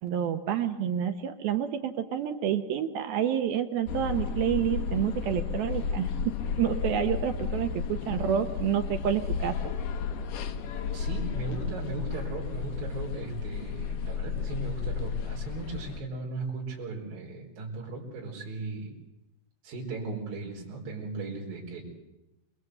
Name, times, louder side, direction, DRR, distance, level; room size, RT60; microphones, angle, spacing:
voice 1, 0.0-6.1 6.6-9.6, right 9 dB, 75° right, 6 dB, 2.3 m, -28 dB
sound 1, 3.9-16.0, left 6 dB, 75° left, 1.9 m, -33 dB
voice 2, 10.9-19.0 19.6-21.8, right 3 dB, 50° right, -3 dB, 6.2 m, -37 dB
28.0 x 21.0 x 8.0 m, 0.95 s
omnidirectional pair, 5.5 m